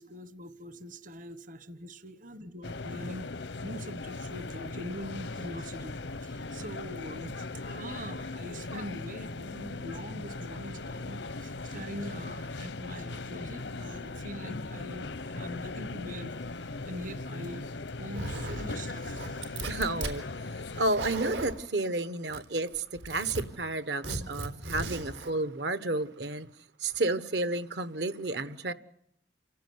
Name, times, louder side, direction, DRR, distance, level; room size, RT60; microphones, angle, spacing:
voice 1, 0.0-3.3 3.6-16.3 16.8-17.7 18.0-19.6, equal, 45° right, 1.2 m, -43 dB
sound 1, 2.6-20.8, left 3 dB, 80° left, 1.0 m, -39 dB
Zipper (clothing), 18.1-18.7 19.0-20.2 20.7-21.6 22.3-22.7 23.0-23.4 24.0-25.3, right 2 dB, 85° right, 4.2 m, -36 dB
voice 2, 19.7-20.2 20.7-26.5 26.8-28.7, right 2 dB, 70° right, 1.2 m, -31 dB
27.5 x 16.5 x 9.5 m
head